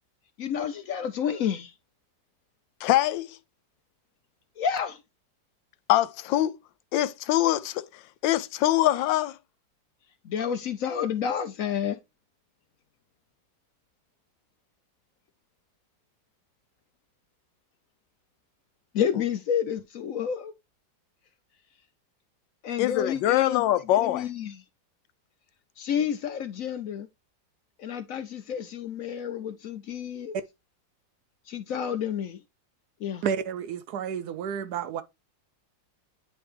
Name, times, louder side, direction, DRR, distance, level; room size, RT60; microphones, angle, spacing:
voice 1, 0.4-1.7 4.6-5.0 10.2-12.0 18.9-20.5 22.6-23.6 24.0-24.6 25.8-27.1 27.8-30.4 31.5-32.4 33.0-33.3, left 8 dB, 65° left, 0.9 m, -30 dB
voice 2, 2.8-3.4 5.9-6.6 6.9-7.9 8.2-9.4 22.8-24.3, left 14 dB, 90° left, 1.3 m, -23 dB
voice 3, 33.2-35.0, right 8 dB, 70° right, 1.0 m, -31 dB
9.8 x 3.4 x 3.2 m
omnidirectional pair, 2.0 m